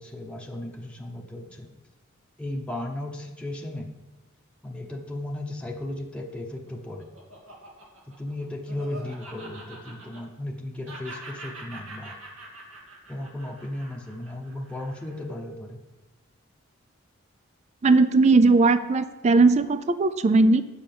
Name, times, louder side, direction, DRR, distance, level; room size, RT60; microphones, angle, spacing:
voice 1, 0.0-1.7 2.4-3.9 4.6-7.1 8.1-12.2 13.1-15.8, left 1 dB, 5° left, -1 dB, 0.9 m, -35 dB
Laughter, 6.5-10.6 10.8-15.3, right 2 dB, 85° right, 2.1 m, -44 dB
voice 2, 17.8-20.6, right 3 dB, 35° right, 13 dB, 0.4 m, -18 dB
8.6 x 5.8 x 7.0 m, 1.1 s
head